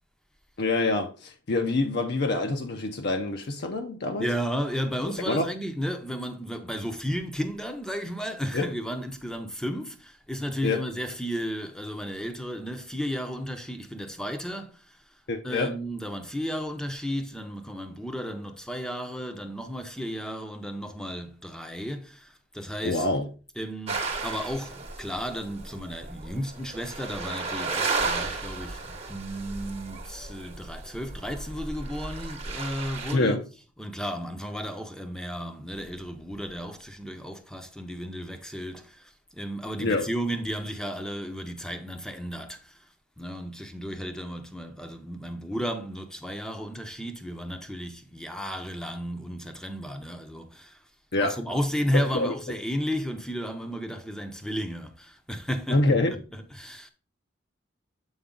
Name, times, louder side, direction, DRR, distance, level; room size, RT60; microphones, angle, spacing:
voice 1, 0.6-4.3 5.3-5.5 8.5-8.7 10.6-10.9 15.3-15.7 22.8-23.3 33.1-33.4 39.8-40.1 51.1-51.4 51.9-52.3 55.7-56.1, left 2 dB, 55° left, 0.6 m, -26 dB
voice 2, 4.2-14.8 15.4-23.1 23.6-33.4 33.8-42.8 43.2-50.8 51.2-55.8 56.5-56.9, equal, 5° left, 0.6 m, -33 dB
sound 1, 23.9-33.2, right 3 dB, 30° right, 0.9 m, -34 dB
7.1 x 4.6 x 3.8 m
head